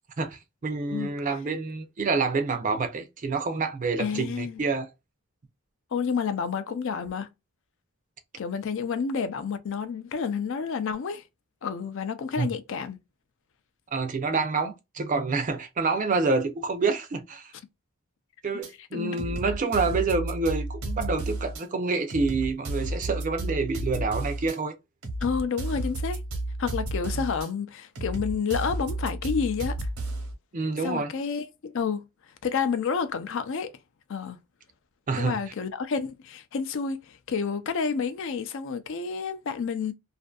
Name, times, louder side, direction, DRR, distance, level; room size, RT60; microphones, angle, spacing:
voice 1, 0.2-4.9 12.4-12.5 13.9-17.5 18.4-24.7 30.5-31.1 35.1-35.4, right 4 dB, 35° right, 0.4 m, -27 dB
voice 2, 4.0-4.6 5.9-7.3 8.4-11.2 11.6-13.0 18.9-19.4 25.2-26.2 26.6-29.8 30.8-32.0 32.4-33.7 34.1-34.4 35.2-39.9, left 6 dB, 60° left, 0.4 m, -29 dB
sound 1, 18.6-18.7 19.2-21.6 22.1-24.6 25.0-27.5 28.0-30.3, right 1 dB, 85° right, 1.0 m, -32 dB
2.5 x 2.5 x 2.3 m
head